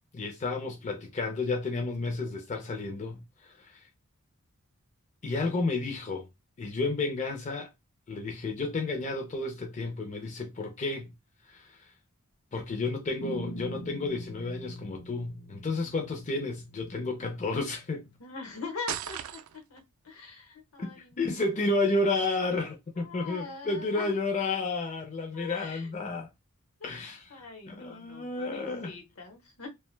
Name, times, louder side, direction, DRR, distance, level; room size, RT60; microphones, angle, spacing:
voice 1, 0.1-3.9 5.2-6.3 6.6-7.7 8.1-11.1 11.5-11.8 12.5-18.1 20.8-26.3 26.8-27.2 27.7-28.9, left 3 dB, 35° left, 0.4 m, -31 dB
sound 1, 13.2-18.2, equal, 90° left, 0.5 m, -44 dB
voice 2, 18.2-19.4 19.7-21.5 22.9-24.2 25.3-25.9 26.8-29.7, left 4 dB, 75° left, 0.9 m, -43 dB
sound 2, 18.9-19.8, right 10 dB, 70° right, 0.3 m, -36 dB
2.4 x 2.2 x 3.1 m
head